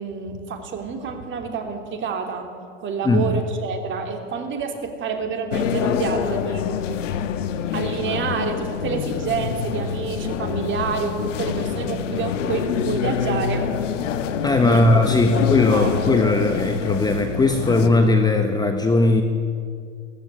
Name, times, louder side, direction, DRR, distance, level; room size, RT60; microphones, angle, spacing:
voice 1, 0.0-2.5 2.8-6.7 7.7-13.7 14.6-14.9 15.3-15.4 15.7-16.1, right 5 dB, 30° right, 4 dB, 3.2 m, -28 dB
voice 2, 3.0-3.4 14.4-19.2, left 2 dB, 10° left, 6 dB, 1.3 m, -18 dB
sound 1, 5.5-17.9, left 7 dB, 80° left, 1.5 m, -26 dB
18.0 x 14.5 x 9.9 m, 2.2 s
hypercardioid pair, 120°, 37 cm